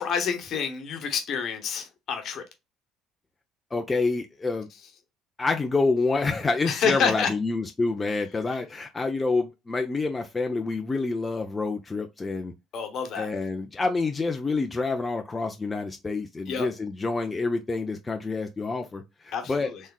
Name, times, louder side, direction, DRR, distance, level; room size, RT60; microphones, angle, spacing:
voice 1, 0.0-2.4 6.6-7.3 12.7-13.3 16.5-16.7 19.3-19.8, left 6 dB, 55° left, 1.1 m, -28 dB
voice 2, 3.7-4.7 5.4-12.5 13.2-19.7, left 3 dB, 25° left, 0.6 m, -27 dB
3.5 x 3.2 x 2.3 m
hypercardioid pair, 60°, 0 cm